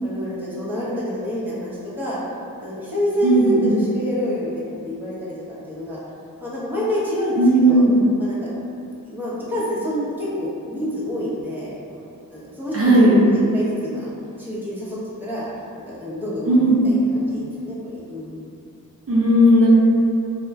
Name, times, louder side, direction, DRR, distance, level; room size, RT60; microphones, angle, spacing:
voice 1, 0.0-2.2 2.6-6.0 6.4-7.8 8.2-8.5 9.0-12.0 12.3-14.1 14.4-16.6 16.8-18.5, equal, 5° right, -9 dB, 0.8 m, -27 dB
voice 2, 3.2-3.7 7.4-7.9 12.7-13.2 16.5-16.8 19.1-19.7, right 1 dB, 40° right, -8 dB, 0.5 m, -15 dB
2.3 x 2.0 x 3.4 m, 2.6 s
wide cardioid pair, 65°, 35 cm